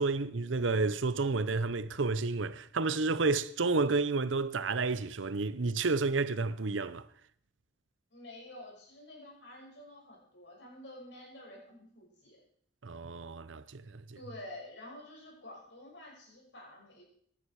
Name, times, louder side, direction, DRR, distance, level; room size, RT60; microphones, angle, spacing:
voice 1, 0.0-7.1 12.8-14.0, right 3 dB, 90° right, 0.7 m, -30 dB
voice 2, 8.1-12.4 14.1-17.0, left 1 dB, 70° left, 6.2 m, -49 dB
16.0 x 11.5 x 4.8 m
head